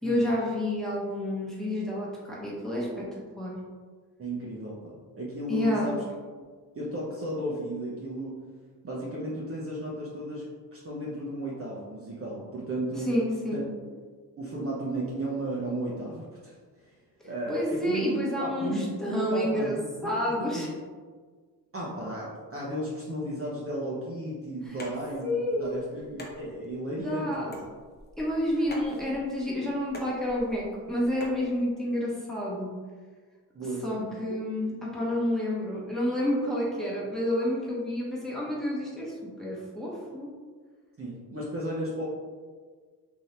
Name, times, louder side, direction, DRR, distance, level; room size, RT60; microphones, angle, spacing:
voice 1, 0.0-3.6 5.5-6.0 13.0-13.7 17.5-20.7 25.2-25.7 27.0-27.5 28.2-32.7 33.8-40.3, left 1 dB, ahead, -6 dB, 1.1 m, -29 dB
voice 2, 4.2-6.0 6.7-8.4 8.8-10.4 10.7-13.1 13.5-13.7 14.4-16.5 17.2-20.7 21.7-27.7 33.5-34.2 41.0-42.1, right 1 dB, 35° right, -5 dB, 0.7 m, -34 dB
sound 1, 24.7-31.4, left 1 dB, 25° left, 0.7 m, -46 dB
2.8 x 2.7 x 3.2 m, 1.5 s
supercardioid pair, 55°, 42 cm